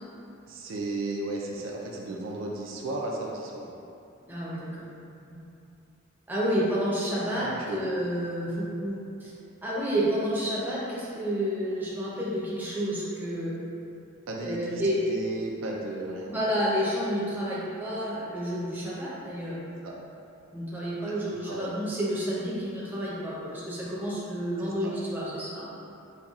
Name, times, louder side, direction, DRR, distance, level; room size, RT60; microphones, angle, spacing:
voice 1, 0.5-3.7 7.3-8.0 14.3-14.8 15.1-16.5 19.8-19.9 21.2-21.7 24.6-24.9, right 2 dB, 65° right, -1 dB, 0.4 m, -35 dB
voice 2, 4.3-4.9 5.1-5.4 6.3-9.3 9.6-13.5 14.4-15.0 16.3-19.6 20.5-25.7, equal, 10° right, -8 dB, 0.6 m, -30 dB
5.4 x 2.2 x 2.4 m, 2.7 s
head